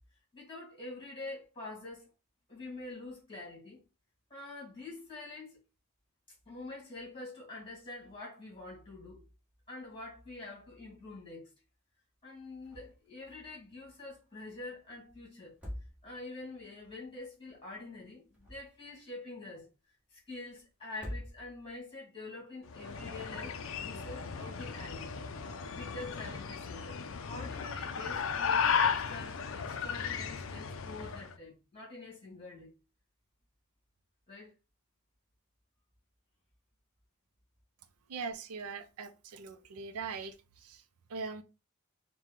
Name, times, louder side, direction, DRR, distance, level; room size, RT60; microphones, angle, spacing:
voice 1, 0.3-2.1 2.5-3.8 4.3-5.6 6.3-9.2 9.7-11.5 12.2-15.6 16.0-19.7 20.1-25.2 25.7-32.7 34.3-34.5, left 2 dB, 25° left, 2.0 m, -46 dB
sound 1, 12.6-13.1 13.4-13.5 15.4-16.4 18.1-19.0 20.9-21.8, left 1 dB, 5° right, 1.4 m, -44 dB
sound 2, 22.7-31.3, left 6 dB, 60° left, 0.4 m, -35 dB
voice 2, 38.1-41.4, right 4 dB, 85° right, 0.5 m, -41 dB
4.4 x 2.2 x 3.7 m
head